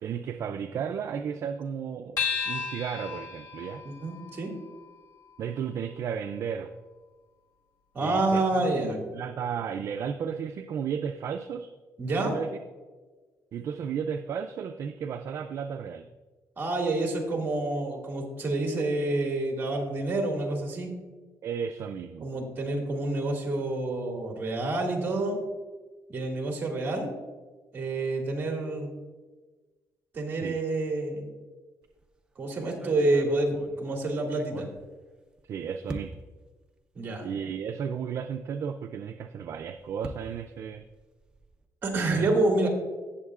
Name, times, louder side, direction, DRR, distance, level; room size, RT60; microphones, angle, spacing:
voice 1, 0.0-3.8 5.4-6.7 8.0-11.7 12.2-12.5 13.5-16.1 21.4-22.3 30.3-30.6 35.5-36.1 37.2-40.8 42.1-42.3, right 7 dB, 55° right, 7 dB, 0.4 m, -34 dB
sound 1, 2.2-6.9, left 6 dB, 75° left, 1.6 m, -36 dB
voice 2, 3.8-4.5 7.9-9.0 12.0-12.4 16.6-20.9 22.2-25.4 26.1-27.1 27.7-28.9 30.1-31.3 32.4-34.7 36.9-37.2 41.8-42.7, right 2 dB, 35° right, 1 dB, 2.1 m, -28 dB
sound 2, 31.8-32.1 32.7-35.4 35.9-36.4 37.2-37.3 37.6-37.7 39.3-41.6, right 2 dB, 15° right, 0.6 m, -44 dB
17.0 x 7.2 x 2.4 m, 1.3 s
cardioid pair, 145°, 6 cm